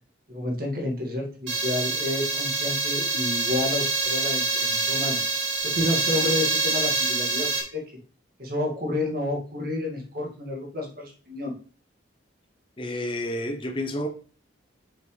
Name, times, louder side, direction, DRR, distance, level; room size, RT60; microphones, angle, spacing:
voice 1, 0.3-5.2 5.6-7.8 8.4-11.5, left 2 dB, 50° right, 2.1 m, -30 dB
sound 1, 1.5-7.6, right 3 dB, 80° right, 2.8 m, -26 dB
voice 2, 12.8-14.1, left 1 dB, 25° left, 0.7 m, -30 dB
6.6 x 6.1 x 3.3 m
head